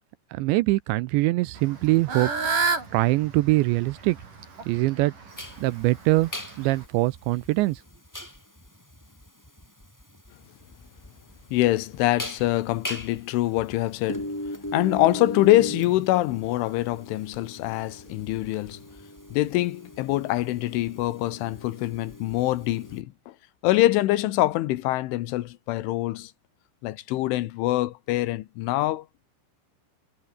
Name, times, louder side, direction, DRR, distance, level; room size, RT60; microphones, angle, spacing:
voice 1, 0.3-2.3 2.9-4.2 4.7-5.1 5.6-6.3 6.6-7.8, right 20 dB, 80° right, 2.7 m, -23 dB
Fowl / Bird, 1.6-6.9, right 4 dB, 40° right, 7.6 m, -31 dB
sound 1, 5.3-23.0, left 1 dB, 5° left, 3.4 m, -39 dB
voice 2, 11.5-14.4 14.7-18.8 19.3-23.3 23.6-26.3 26.8-29.3, left 16 dB, 80° left, 3.5 m, -24 dB
omnidirectional pair, 5.6 m